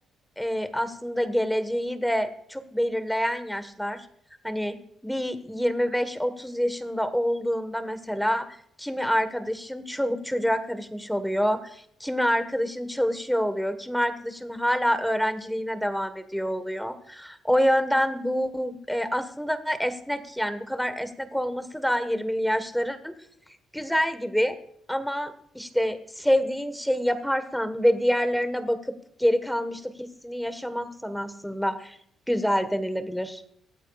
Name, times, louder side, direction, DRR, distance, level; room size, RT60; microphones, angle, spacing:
voice 1, 0.4-4.1 4.4-4.8 5.0-8.5 8.8-23.1 23.7-24.6 24.9-28.9 29.2-32.0 32.3-33.4, equal, ahead, 11 dB, 1.3 m, -27 dB
23.0 x 8.9 x 2.4 m, 0.68 s
cardioid pair, 90°, 0 cm